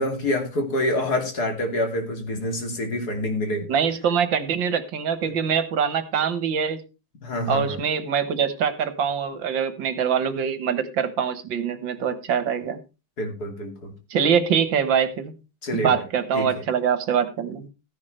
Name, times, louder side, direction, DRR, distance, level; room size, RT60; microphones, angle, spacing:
voice 1, 0.0-3.7 5.2-5.3 7.2-7.8 13.2-13.9 15.6-16.0 16.3-16.5, left 1 dB, 50° left, 4 dB, 3.2 m, -26 dB
voice 2, 3.7-6.8 7.5-12.8 14.1-15.4 15.7-17.7, right 7 dB, 75° right, 12 dB, 2.0 m, -24 dB
14.5 x 10.5 x 3.2 m, 0.29 s
omnidirectional pair, 2.1 m